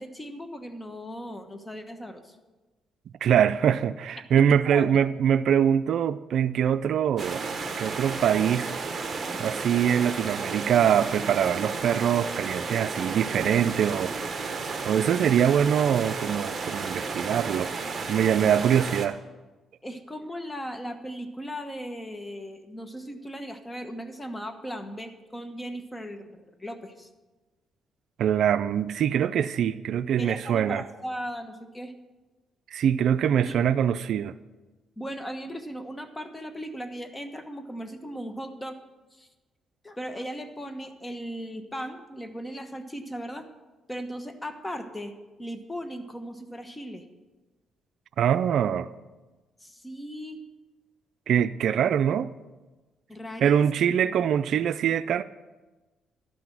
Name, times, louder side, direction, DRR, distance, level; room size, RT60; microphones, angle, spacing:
voice 1, 0.0-2.4 4.7-5.0 19.8-27.1 30.2-31.9 33.5-33.6 35.0-38.8 39.1-39.3 39.8-43.5 43.9-45.1 45.4-47.0 49.6-50.4 53.1-53.6, equal, 15° left, 1.1 m, -37 dB
voice 2, 3.2-7.4 7.8-8.7 9.4-14.1 14.9-17.7 18.1-19.2 28.2-30.8 32.7-34.3 48.2-48.9 51.3-52.3 53.4-55.2, right 9 dB, 70° right, 0.3 m, -23 dB
sound 1, 7.2-19.1, right 4 dB, 35° right, 1.2 m, -33 dB
12.0 x 6.1 x 7.5 m
cardioid pair, 90°, 0 cm